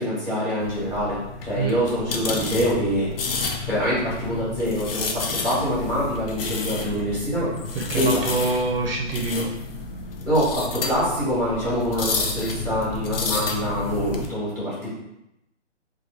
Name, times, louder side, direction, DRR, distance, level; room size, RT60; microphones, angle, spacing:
voice 1, 0.0-3.1 3.6-7.5 7.9-8.2 10.2-14.9, equal, 10° left, -9 dB, 1.0 m, -25 dB
sound 1, 0.6-14.3, left 4 dB, 55° left, 0.4 m, -31 dB
voice 2, 7.9-9.5, right 3 dB, 55° right, 0 dB, 0.5 m, -25 dB
2.8 x 2.3 x 3.2 m, 0.87 s
hypercardioid pair, 165°, 36 cm